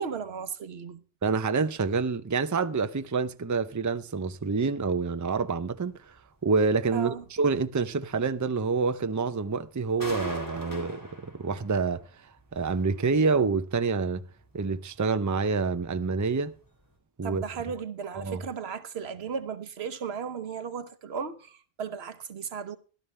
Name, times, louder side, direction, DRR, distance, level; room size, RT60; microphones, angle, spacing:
voice 1, 0.0-1.0 6.9-7.2 17.2-22.8, right 6 dB, 85° right, 1.2 m, -35 dB
voice 2, 1.2-6.1 6.4-12.0 12.5-14.2 14.5-16.5 17.2-17.4 18.1-18.4, right 4 dB, 25° right, 0.5 m, -27 dB
sound 1, 5.0-5.2 5.6-5.8 6.1-6.2 6.6-6.7 7.1-7.2 7.6-7.7 8.1-8.7 9.2-9.4 9.7-9.8 10.0-12.0 12.3-13.5 13.9-14.0 14.4-14.5 14.9-15.6 15.9-16.1 16.5-16.6 16.9-17.0, equal, 20° left, 3.5 m, -41 dB
14.5 x 12.0 x 3.3 m
omnidirectional pair, 1.0 m